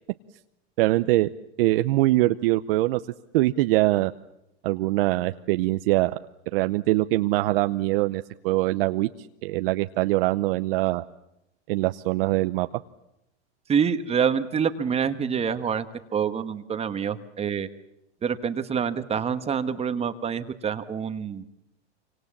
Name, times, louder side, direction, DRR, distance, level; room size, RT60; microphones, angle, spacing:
voice 1, 0.8-1.3 1.6-3.0 3.3-4.1 4.6-6.2 6.5-9.1 9.4-11.0 11.7-12.7, right 18 dB, 55° right, 10 dB, 0.9 m, -23 dB
voice 2, 13.7-15.8 16.1-17.7 18.2-21.4, right 7 dB, 20° right, 10 dB, 1.3 m, -26 dB
27.0 x 25.0 x 7.4 m, 0.85 s
hypercardioid pair, 135°, 34 cm